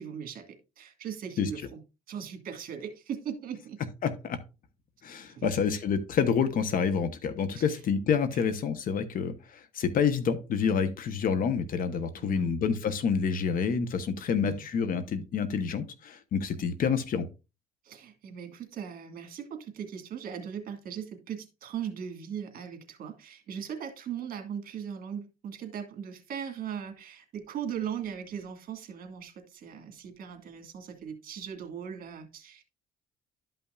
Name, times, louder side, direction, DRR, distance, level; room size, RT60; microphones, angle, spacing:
voice 1, 0.0-1.8 2.1-3.8 5.3-5.8 7.5-7.8 8.3-8.5 12.2-12.6 14.3-14.7 17.8-32.6, right 8 dB, 60° right, 1.9 m, -39 dB
voice 2, 4.0-4.4 5.0-17.3, left 6 dB, 55° left, 1.1 m, -28 dB
12.0 x 5.6 x 2.5 m
cardioid pair, 110°, 17 cm